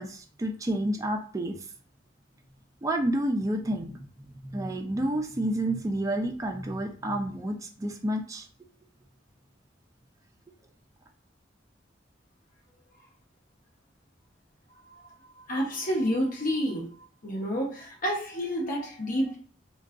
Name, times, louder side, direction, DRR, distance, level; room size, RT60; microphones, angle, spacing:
voice 1, 0.0-1.6 2.8-4.0 4.4-8.5, right 1 dB, 20° right, 3 dB, 0.4 m, -29 dB
voice 2, 15.5-16.9 17.2-19.4, equal, 50° left, -1 dB, 0.8 m, -29 dB
3.6 x 2.2 x 2.4 m, 0.43 s
head